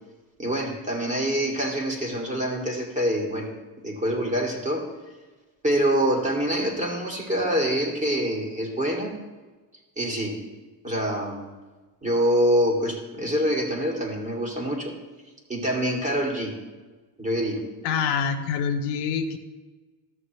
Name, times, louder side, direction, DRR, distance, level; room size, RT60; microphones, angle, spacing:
voice 1, 0.4-3.5 3.8-4.9 5.6-9.1 10.0-10.4 10.8-11.5 12.0-14.9 15.5-16.5 17.2-17.6, equal, 15° right, -2 dB, 2.6 m, -25 dB
voice 2, 17.8-19.4, left 6 dB, 70° left, 7 dB, 0.9 m, -26 dB
14.0 x 6.4 x 3.1 m, 1.3 s
supercardioid pair, 95°, 42 cm